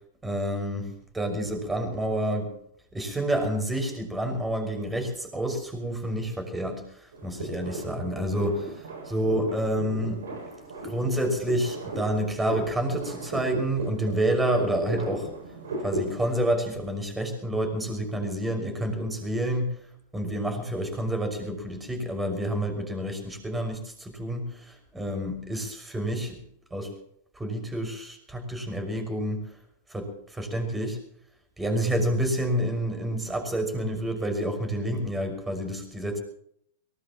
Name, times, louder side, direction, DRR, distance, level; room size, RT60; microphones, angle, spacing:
voice 1, 0.2-2.5 2.9-10.2 10.8-15.3 15.8-19.7 20.1-26.4 26.7-26.9 27.4-29.4 29.9-31.0 31.6-36.2, right 1 dB, 10° right, 5 dB, 5.9 m, -29 dB
sound 1, 7.1-16.3, right 2 dB, 80° right, 7.0 m, -36 dB
23.0 x 20.0 x 3.0 m, 0.68 s
hypercardioid pair, 105°, 0 cm